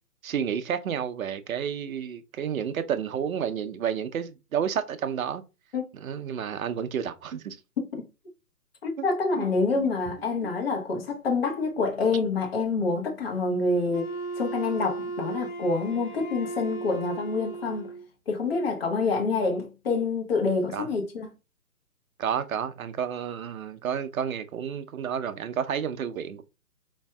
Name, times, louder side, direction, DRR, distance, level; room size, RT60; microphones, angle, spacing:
voice 1, 0.2-5.4 5.9-7.6 9.3-9.4 9.8-9.9 20.7-20.9 22.2-26.4, right 8 dB, 65° right, 0.6 m, -30 dB
voice 2, 8.8-17.9 18.3-21.3, left 3 dB, 40° left, 1.0 m, -27 dB
Wind instrument woodwind instrument, 13.9-18.1, right 3 dB, 70° left, 1.4 m, -36 dB
4.5 x 2.7 x 2.2 m
figure-of-eight pair, 145°, 45 cm